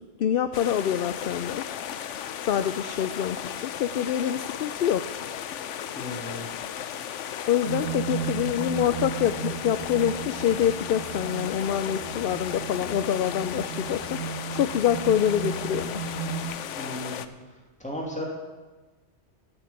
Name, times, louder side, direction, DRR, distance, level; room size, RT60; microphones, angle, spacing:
voice 1, 0.0-1.6 2.4-5.1 7.5-14.2 14.5-16.0, left 9 dB, 60° left, 11 dB, 0.7 m, -26 dB
sound 1, 0.5-17.3, left 9 dB, 90° left, 1.0 m, -35 dB
voice 2, 5.9-6.5 16.8-17.2 17.5-18.2, left 1 dB, 5° left, -2 dB, 2.9 m, -35 dB
sound 2, 7.6-16.4, right 7 dB, 75° right, 3.6 m, -35 dB
13.5 x 6.9 x 8.7 m, 1.2 s
omnidirectional pair, 1.2 m